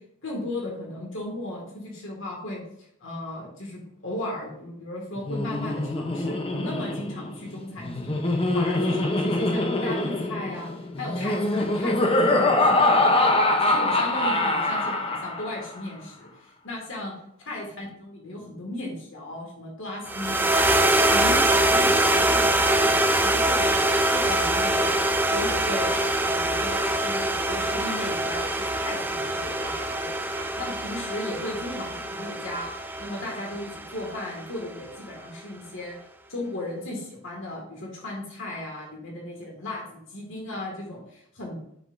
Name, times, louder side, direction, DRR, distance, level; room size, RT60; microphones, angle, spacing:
voice 1, 0.2-2.6 3.0-10.7 11.0-13.3 13.6-16.3 16.6-17.1 17.5-20.8 21.1-22.9 23.2-23.7 24.0-25.0 25.3-25.9 26.2-35.9 36.3-41.6, left 1 dB, 60° left, -1 dB, 2.0 m, -36 dB
Laughter, 5.2-15.6, left 2 dB, 25° left, 0.8 m, -24 dB
sound 1, 20.1-34.5, right 1 dB, 10° right, 0.4 m, -24 dB
Singing, 25.2-25.6 25.9-27.3 27.6-28.9 29.3-30.0 30.3-30.5, right 4 dB, 75° right, 1.9 m, -43 dB
12.5 x 5.8 x 2.6 m, 0.74 s
head